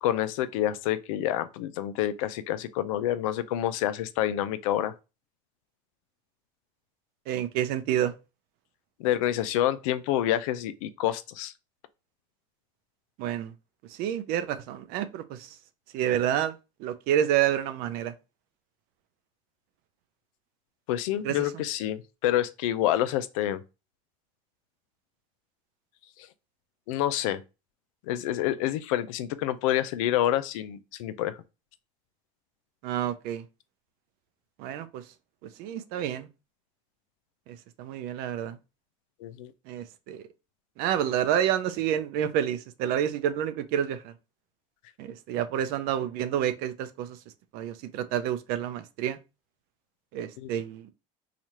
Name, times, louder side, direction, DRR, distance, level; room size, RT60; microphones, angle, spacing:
voice 1, 0.0-4.9 9.0-11.5 20.9-23.6 26.9-27.4 28.1-31.4 39.2-39.5 50.4-50.5, left 12 dB, 80° left, 0.4 m, -28 dB
voice 2, 7.3-8.1 13.2-13.5 13.9-15.6 15.9-18.1 21.2-21.6 32.8-33.4 34.6-35.0 35.6-36.3 37.5-38.6 39.7-40.3 40.8-44.1 45.0-47.2 47.5-49.2 50.1-50.9, right 10 dB, 65° right, 0.5 m, -29 dB
3.0 x 2.4 x 4.1 m
supercardioid pair, 90°, 17 cm